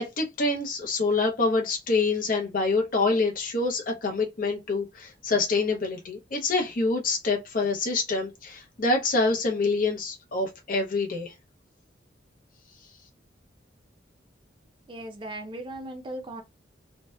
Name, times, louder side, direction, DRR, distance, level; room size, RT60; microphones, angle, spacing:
voice 1, 0.0-11.3, left 3 dB, 50° left, 0.6 m, -26 dB
voice 2, 14.9-16.4, right 1 dB, 25° right, 0.4 m, -37 dB
2.6 x 2.1 x 2.2 m
head